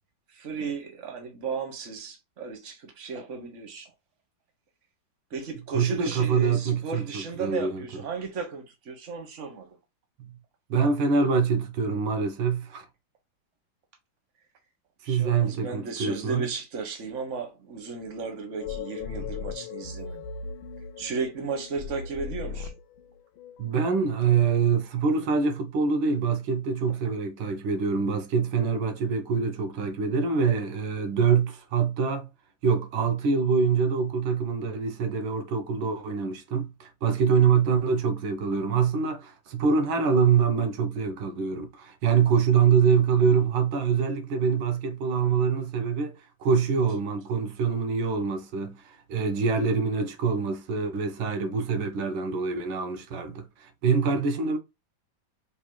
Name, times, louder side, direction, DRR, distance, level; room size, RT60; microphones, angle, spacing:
voice 1, 0.3-3.9 5.3-9.8 15.0-20.3 21.0-22.7, right 4 dB, 40° right, 1.5 m, -35 dB
voice 2, 5.7-7.9 10.7-12.9 15.0-16.5 23.6-32.3 32.6-54.6, right 5 dB, 85° right, 1.6 m, -25 dB
sound 1, 18.6-23.6, left 5 dB, 85° left, 1.5 m, -38 dB
5.9 x 3.2 x 2.2 m
omnidirectional pair, 2.1 m